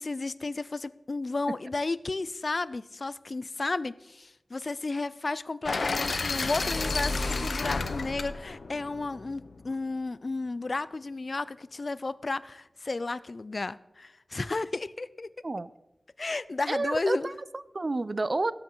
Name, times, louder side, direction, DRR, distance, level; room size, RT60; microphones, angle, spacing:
voice 1, 0.0-15.3 16.2-17.3, left 3 dB, 50° left, 17 dB, 0.4 m, -33 dB
sound 1, 5.6-9.7, left 3 dB, 80° left, 0.7 m, -31 dB
voice 2, 16.7-18.5, right 2 dB, 45° right, 17 dB, 0.4 m, -30 dB
17.5 x 7.9 x 3.9 m, 0.98 s
wide cardioid pair, 80°, 0 cm